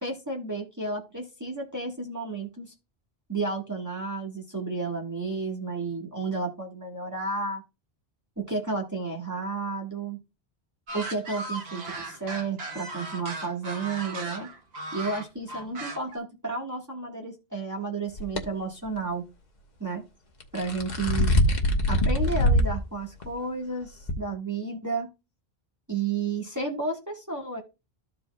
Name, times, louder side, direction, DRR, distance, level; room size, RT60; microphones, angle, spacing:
voice 1, 0.0-2.7 3.3-7.6 8.4-10.2 10.9-14.5 14.9-19.2 19.8-20.0 20.5-21.3 21.9-25.1 25.9-27.6, right 3 dB, 15° right, -1 dB, 1.6 m, -32 dB
sound 1, 10.9-16.2, right 2 dB, 90° right, 1.6 m, -37 dB
sound 2, 18.2-18.4 20.4-22.8 23.2-23.3 24.1-24.2, equal, 45° left, 1.2 m, -23 dB
14.0 x 4.8 x 2.3 m, 0.27 s
omnidirectional pair, 1.0 m